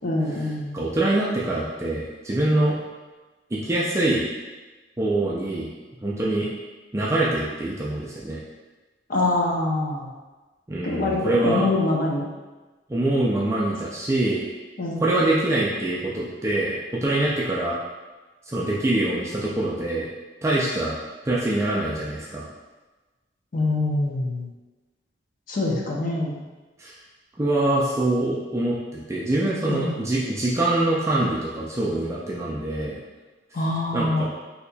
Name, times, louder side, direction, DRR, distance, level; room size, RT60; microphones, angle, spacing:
voice 1, 0.0-0.8 9.1-10.1 10.8-12.3 14.8-15.1 23.5-24.5 25.5-26.4 29.7-30.0 33.5-34.2, left 2 dB, 50° left, -2 dB, 0.5 m, -25 dB
voice 2, 0.7-2.8 3.5-4.2 5.0-5.7 6.0-6.5 6.9-8.4 10.7-11.6 12.9-14.5 15.0-17.8 18.5-20.1 20.4-21.0 21.3-22.5 26.8-26.9 27.4-33.0 33.9-34.2, right 1 dB, 15° right, -5 dB, 0.4 m, -24 dB
4.0 x 2.8 x 2.2 m, 1.2 s
head